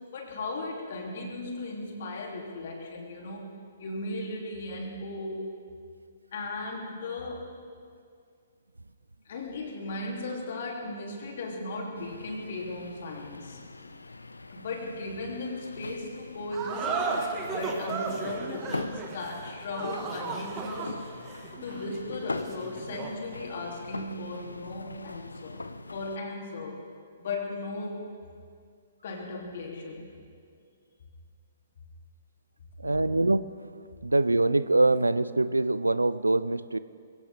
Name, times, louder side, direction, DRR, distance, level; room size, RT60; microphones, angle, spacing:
voice 1, 0.1-3.5 3.8-5.5 6.3-7.5 9.2-13.6 14.5-21.0 21.6-25.6 25.9-26.8 27.2-28.0 29.0-30.1 32.8-33.0, left 2 dB, 50° left, 0 dB, 3.1 m, -36 dB
sound 1, 12.0-26.2, left 2 dB, 80° left, 0.6 m, -42 dB
sound 2, 16.5-23.2, right 4 dB, 25° right, 1.8 m, -35 dB
voice 2, 32.8-33.7 34.0-36.8, right 2 dB, 85° right, 16 dB, 0.5 m, -24 dB
22.0 x 16.5 x 3.6 m, 2.2 s
figure-of-eight pair, 125°, 0 cm